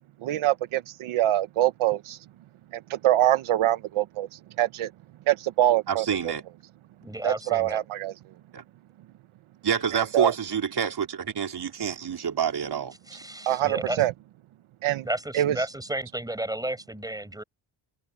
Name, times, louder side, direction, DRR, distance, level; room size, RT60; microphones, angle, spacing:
voice 1, 0.2-2.2 2.7-4.9 5.3-6.1 7.2-8.1 9.9-10.3 13.5-14.1 14.8-15.0 15.3-15.6, right 13 dB, 80° right, 0.9 m, -24 dB
voice 2, 5.9-6.4 8.5-8.6 9.6-13.2, right 7 dB, 50° right, 4.1 m, -27 dB
voice 3, 7.0-7.8 13.1-14.0 15.0-17.4, right 1 dB, 5° right, 7.4 m, -32 dB
open air
cardioid pair, 125°, 48 cm